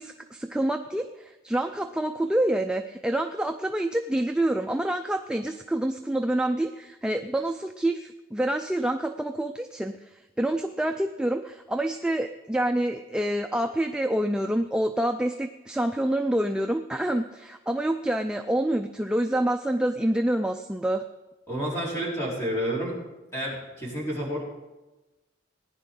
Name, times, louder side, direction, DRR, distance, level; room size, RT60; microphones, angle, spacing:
voice 1, 0.0-21.0, right 1 dB, 5° right, 5 dB, 0.3 m, -27 dB
voice 2, 21.5-22.9 23.3-24.4, equal, 15° left, -6 dB, 3.9 m, -30 dB
18.5 x 10.5 x 3.8 m, 1.1 s
head